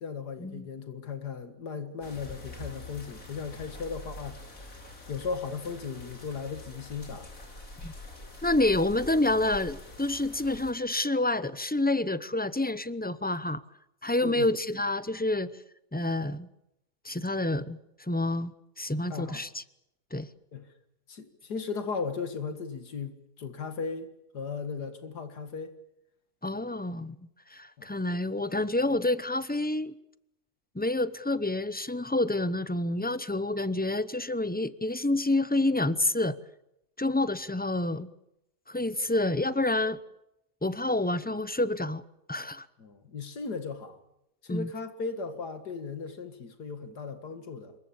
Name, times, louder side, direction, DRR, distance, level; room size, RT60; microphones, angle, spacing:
voice 1, 0.0-4.8 5.1-7.3 14.2-14.5 19.1-19.4 20.5-20.7 21.1-24.1 24.3-25.8 27.8-27.9 42.8-44.0 44.4-47.8, left 5 dB, 85° left, 2.4 m, -37 dB
sound 1, 2.0-10.7, left 2 dB, 55° left, 4.7 m, -45 dB
voice 2, 8.4-13.6 14.0-15.5 15.9-16.5 17.0-17.8 18.1-19.6 20.1-20.3 26.4-27.2 27.5-30.0 30.7-36.4 37.0-38.1 38.7-40.0 40.6-42.0 42.3-42.7 44.5-44.7, left 2 dB, 10° left, 0.5 m, -28 dB
27.0 x 23.0 x 7.2 m
omnidirectional pair, 1.7 m